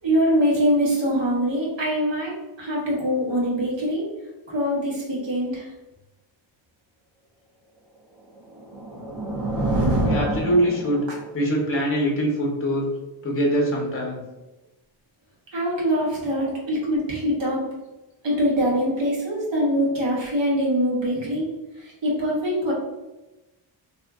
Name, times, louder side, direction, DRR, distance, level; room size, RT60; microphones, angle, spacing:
voice 1, 0.0-4.1 4.5-5.7 15.5-17.7 18.2-21.5 21.8-22.7, equal, 65° right, -4 dB, 1.2 m, -23 dB
sound 1, 8.4-11.3, right 1 dB, 85° right, 0.9 m, -25 dB
voice 2, 10.0-11.1 11.3-12.9 13.2-14.2, equal, 25° left, -1 dB, 0.7 m, -23 dB
2.7 x 2.5 x 3.5 m, 1.1 s
wide cardioid pair, 180°, 48 cm